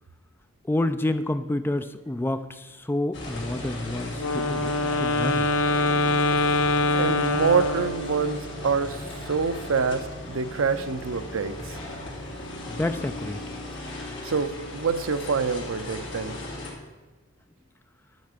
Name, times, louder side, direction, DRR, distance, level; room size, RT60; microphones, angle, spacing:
voice 1, 0.6-5.5 12.7-13.4, left 1 dB, 10° left, 10 dB, 0.3 m, -29 dB
sound 1, 3.1-16.7, left 1 dB, 55° left, 2.7 m, -36 dB
Wind instrument woodwind instrument, 4.2-8.3, left 2 dB, 75° left, 0.8 m, -24 dB
voice 2, 6.9-11.8 14.2-16.4, right 5 dB, 70° right, 11 dB, 0.6 m, -26 dB
10.5 x 5.7 x 6.6 m, 1.3 s
head